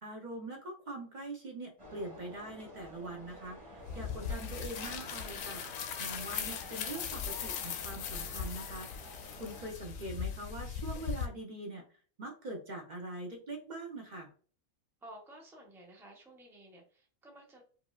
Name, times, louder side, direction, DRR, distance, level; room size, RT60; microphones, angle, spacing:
voice 1, 0.0-11.8 12.2-14.3, right 2 dB, 45° right, 1 dB, 0.6 m, -43 dB
sound 1, 1.8-9.7, left 1 dB, 20° right, 1.8 m, -51 dB
sound 2, 3.9-11.3, left 7 dB, 70° left, 0.9 m, -39 dB
sound 3, 4.7-10.4, left 5 dB, 90° left, 1.1 m, -52 dB
voice 2, 15.0-17.6, right 1 dB, ahead, -1 dB, 0.7 m, -54 dB
4.8 x 2.6 x 2.3 m, 0.42 s
omnidirectional pair, 1.6 m